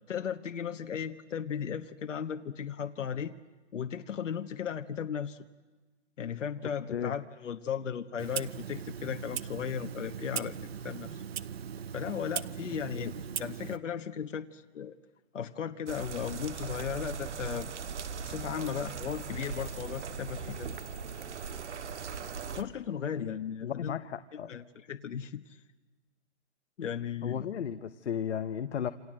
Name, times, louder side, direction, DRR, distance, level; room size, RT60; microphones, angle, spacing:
voice 1, 0.1-3.3 3.7-5.4 6.2-10.6 10.8-11.2 11.9-14.9 15.3-17.7 18.2-20.7 22.5-24.0 24.3-25.4 26.8-27.5, left 8 dB, 85° left, 7 dB, 1.4 m, -36 dB
Clock, 8.2-13.8, right 8 dB, 55° right, 0.9 m, -39 dB
sound 1, 15.9-22.6, right 6 dB, 70° right, 1.9 m, -39 dB
voice 2, 23.6-24.5 27.2-28.9, left 8 dB, 65° left, 10 dB, 1.2 m, -34 dB
28.0 x 27.0 x 7.7 m, 1.2 s
hypercardioid pair, 180°, 36 cm